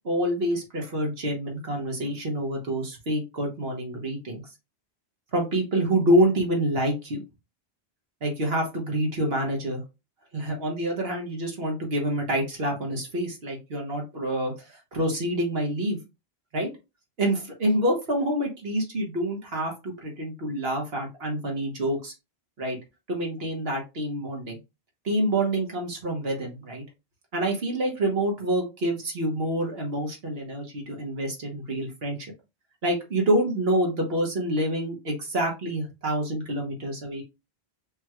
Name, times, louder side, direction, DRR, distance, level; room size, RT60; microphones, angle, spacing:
voice 1, 0.0-4.4 5.3-7.2 8.2-9.8 10.3-14.5 14.9-16.0 16.5-16.7 17.2-22.1 22.6-22.8 23.1-24.6 25.0-26.8 27.3-32.2 32.8-37.2, right 1 dB, 70° right, 1 dB, 1.5 m, -27 dB
5.3 x 3.0 x 2.4 m, 0.25 s
omnidirectional pair, 1.1 m